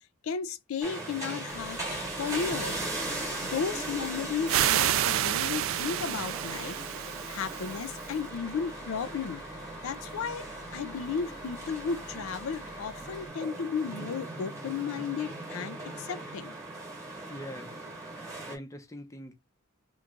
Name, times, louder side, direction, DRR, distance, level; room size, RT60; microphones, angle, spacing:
voice 1, 0.2-2.9 3.4-6.8 7.3-9.4 9.8-10.5 10.7-16.5, left 6 dB, 80° left, 0.4 m, -34 dB
sound 1, 0.8-18.6, right 2 dB, 15° right, 1.2 m, -39 dB
Bus, 1.5-13.3, left 2 dB, 60° left, 1.1 m, -49 dB
sound 2, 4.5-8.1, right 12 dB, 65° right, 0.3 m, -29 dB
voice 2, 17.3-19.3, equal, 15° left, 0.6 m, -44 dB
3.0 x 2.3 x 3.7 m
head